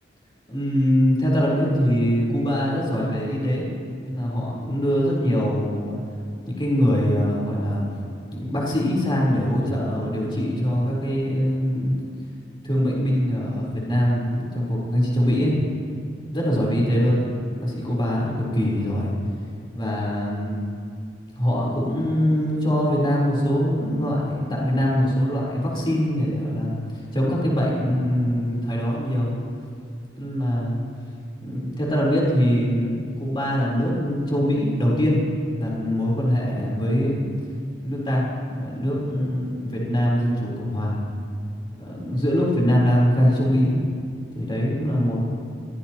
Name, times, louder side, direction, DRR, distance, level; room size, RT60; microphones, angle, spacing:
voice 1, 0.5-3.7 4.0-6.0 6.5-7.9 8.3-11.9 12.6-15.5 16.3-17.2 17.5-19.1 19.7-20.6 21.3-29.4 30.2-30.8 31.4-35.2 35.6-37.3 37.8-41.0 41.8-43.7 44.3-45.2, equal, 25° left, -5 dB, 3.9 m, -23 dB
22.0 x 16.0 x 3.0 m, 2.3 s
head